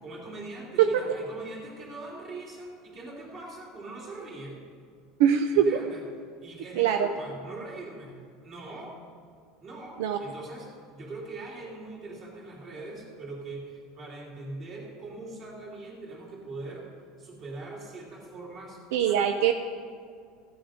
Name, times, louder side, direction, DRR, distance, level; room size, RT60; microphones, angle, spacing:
voice 1, 0.0-4.6 5.6-6.0 6.4-8.2 8.4-9.0 9.6-10.7 10.9-16.9 17.2-18.8, right 2 dB, 35° right, -2 dB, 3.2 m, -41 dB
voice 2, 5.2-5.7 6.8-7.1 10.0-10.2 18.9-19.5, right 10 dB, 80° right, 6 dB, 0.6 m, -22 dB
15.0 x 9.5 x 5.1 m, 2.1 s
supercardioid pair, 145°, 0 cm